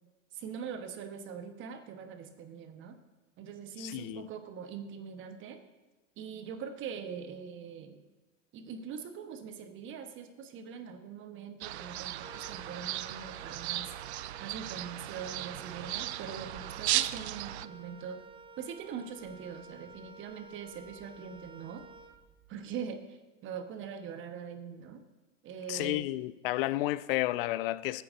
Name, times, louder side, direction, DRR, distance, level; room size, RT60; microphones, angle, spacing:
voice 1, 0.3-3.0 3.4-5.6 6.2-8.0 8.5-13.9 14.4-18.2 18.6-21.8 22.5-25.0 25.4-26.1, right 7 dB, 30° right, 1.2 m, -42 dB
voice 2, 3.8-4.3 25.7-28.0, left 17 dB, 45° left, 0.5 m, -32 dB
sound 1, 11.6-17.7, right 14 dB, 60° right, 0.5 m, -36 dB
Wind instrument woodwind instrument, 12.2-22.6, right 3 dB, 15° right, 0.8 m, -52 dB
21.0 x 9.1 x 2.6 m
hypercardioid pair, 105°, 38 cm